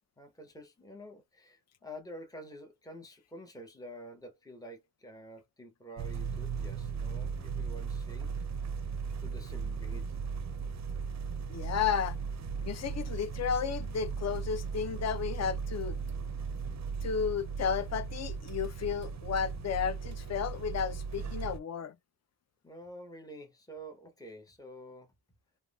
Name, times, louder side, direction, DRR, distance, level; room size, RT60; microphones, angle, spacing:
voice 1, 0.2-8.3 9.2-10.1 22.6-25.1, equal, 10° left, 0.8 m, -48 dB
sound 1, 6.0-21.6, right 5 dB, 45° right, 0.5 m, -37 dB
voice 2, 11.5-12.2 12.6-16.0 17.0-21.9, left 7 dB, 40° left, 0.5 m, -33 dB
3.4 x 2.1 x 2.2 m
wide cardioid pair, 110°, 41 cm